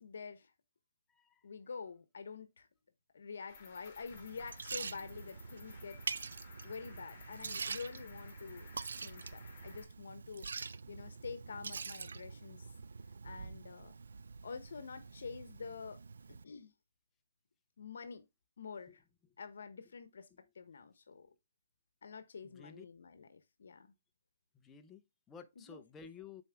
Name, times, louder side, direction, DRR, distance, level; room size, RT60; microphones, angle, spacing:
voice 1, 0.0-0.5 1.4-2.7 3.1-6.0 6.6-8.7 9.0-10.5 10.9-12.7 13.2-13.9 14.4-16.0 16.3-16.7 17.8-18.2 18.6-19.0 19.4-20.3 20.5-21.3 22.0-23.9 25.6-25.8, left 5 dB, 70° left, 0.9 m, -47 dB
voice 2, 1.1-1.4 21.3-21.4 22.4-22.9 24.6-26.4, left 6 dB, 10° left, 0.6 m, -53 dB
Cricket, 3.5-9.8, left 4 dB, 30° left, 2.8 m, -57 dB
Liquid, 4.1-16.4, right 5 dB, 85° right, 0.4 m, -45 dB
7.2 x 4.4 x 3.4 m
hypercardioid pair, 170°, 0 cm